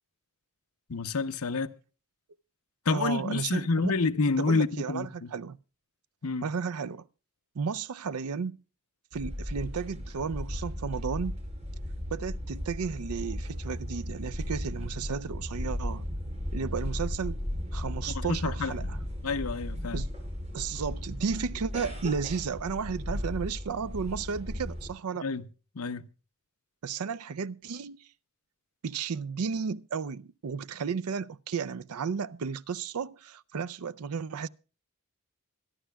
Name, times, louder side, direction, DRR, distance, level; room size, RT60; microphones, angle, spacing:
voice 1, 0.9-1.7 2.8-5.3 6.2-6.5 18.1-18.9 19.2-20.0 25.2-25.4 25.7-26.1, left 4 dB, 80° left, 0.8 m, -29 dB
voice 2, 2.9-3.9 4.4-5.6 6.4-7.0 7.6-8.6 9.1-11.4 12.1-16.0 16.5-17.4 17.7-18.8 19.9-20.1 20.5-25.3 26.8-28.0 28.8-34.5, right 5 dB, 90° right, 0.5 m, -33 dB
sound 1, 9.1-24.9, left 1 dB, 30° right, 5.4 m, -36 dB
25.0 x 11.0 x 2.3 m
head